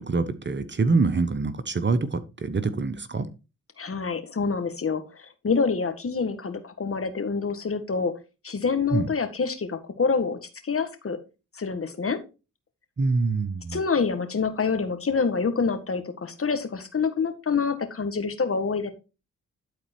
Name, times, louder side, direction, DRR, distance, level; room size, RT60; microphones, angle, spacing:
voice 1, 0.0-3.3 8.9-9.1 13.0-13.8, right 4 dB, 30° right, 1.0 m, -25 dB
voice 2, 3.8-8.1 8.4-11.2 11.6-12.2 13.7-18.9, left 5 dB, 40° left, 1.8 m, -27 dB
11.5 x 4.2 x 4.5 m
hypercardioid pair, 45°, 35 cm